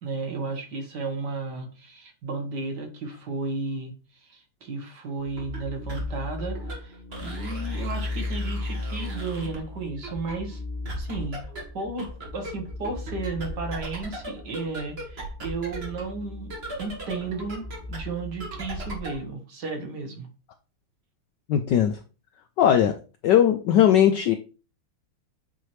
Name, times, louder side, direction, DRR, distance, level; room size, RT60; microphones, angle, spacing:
voice 1, 0.0-3.9 4.2-10.6 11.0-16.5 16.8-20.3, right 3 dB, 55° right, 4 dB, 1.8 m, -34 dB
sound 1, 5.2-19.3, left 1 dB, 30° right, 1.7 m, -35 dB
voice 2, 21.5-22.0 22.6-23.0 23.2-24.4, left 10 dB, 75° left, 8 dB, 1.0 m, -19 dB
8.6 x 4.5 x 3.1 m, 0.34 s
omnidirectional pair, 2.4 m